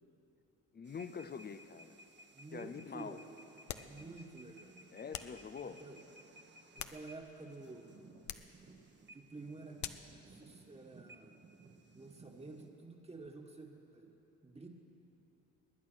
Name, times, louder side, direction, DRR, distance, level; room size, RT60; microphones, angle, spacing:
voice 1, 0.7-2.0 2.5-3.2 4.9-5.8, left 6 dB, 35° left, 11 dB, 0.6 m, -45 dB
sound 1, 0.8-12.7, right 2 dB, 35° right, 1.3 m, -59 dB
voice 2, 2.3-4.8 5.6-6.0 6.7-8.0 9.1-9.8 10.3-11.4 11.9-14.1 14.4-14.7, right 3 dB, 20° right, 1 dB, 1.7 m, -51 dB
sound 2, 3.7-4.0 5.1-5.4 6.5-7.4 8.2-8.6 9.8-10.2, left 11 dB, 70° left, 0.7 m, -45 dB
20.0 x 9.5 x 6.3 m, 3.0 s
cardioid pair, 90°, 30 cm